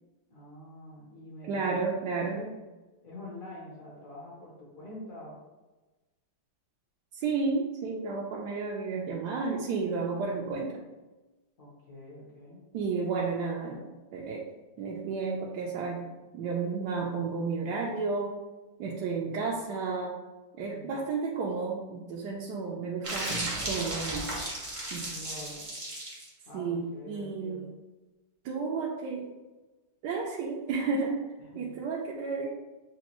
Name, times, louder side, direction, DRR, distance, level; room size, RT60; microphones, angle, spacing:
voice 1, 0.3-1.6 2.1-2.6 3.0-5.4 11.6-12.6 20.7-20.9 25.1-25.7 26.5-27.6 31.4-31.7, left 1 dB, 50° left, -5 dB, 1.4 m, -46 dB
voice 2, 1.5-2.4 7.1-10.8 12.7-14.5 14.8-16.0 16.3-18.4 18.8-20.2 20.6-23.3 23.7-24.4 24.9-25.1 26.5-27.7 28.4-29.3 30.0-31.2 31.6-32.5, right 4 dB, 75° right, -3 dB, 1.1 m, -32 dB
sound 1, 23.0-26.3, right 1 dB, 30° right, 0.5 m, -35 dB
7.0 x 2.3 x 2.9 m, 1.1 s
omnidirectional pair, 2.0 m